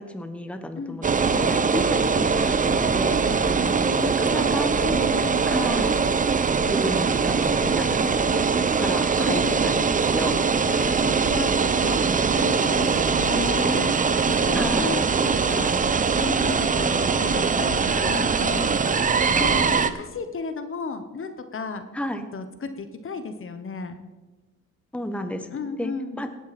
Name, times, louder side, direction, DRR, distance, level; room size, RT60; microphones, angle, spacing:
voice 1, 0.0-3.2 4.0-4.9 5.5-6.0 6.7-10.6 14.5-15.0 21.9-22.3 24.9-25.5 25.8-25.9 26.2-26.3, left 1 dB, 5° left, 8 dB, 1.1 m, -32 dB
sound 1, 1.0-19.9, right 5 dB, 25° right, 0.7 m, -22 dB
voice 2, 3.3-4.5 4.8-5.5 9.3-9.6 10.6-18.9 19.3-21.9 22.3-24.0 25.5-26.2, left 4 dB, 45° left, 9 dB, 1.1 m, -34 dB
18.0 x 8.4 x 4.3 m, 1.2 s
cardioid pair, 90°, 30 cm